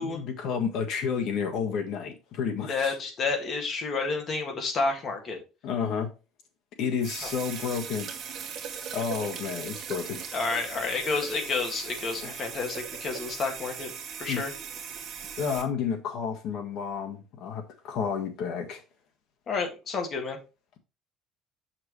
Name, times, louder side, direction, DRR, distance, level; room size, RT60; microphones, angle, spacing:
voice 1, 0.0-2.9 5.6-6.1 6.8-8.1 8.9-10.2 12.2-12.4 14.3-14.4 15.4-18.8, left 6 dB, 55° left, 1.6 m, -31 dB
voice 2, 2.7-5.4 7.2-7.3 10.3-13.9 14.2-14.5 19.5-20.4, left 4 dB, 35° left, 1.9 m, -30 dB
sound 1, 7.0-15.6, right 7 dB, 40° right, 1.5 m, -39 dB
7.0 x 6.0 x 3.1 m
cardioid pair, 160°, 0 cm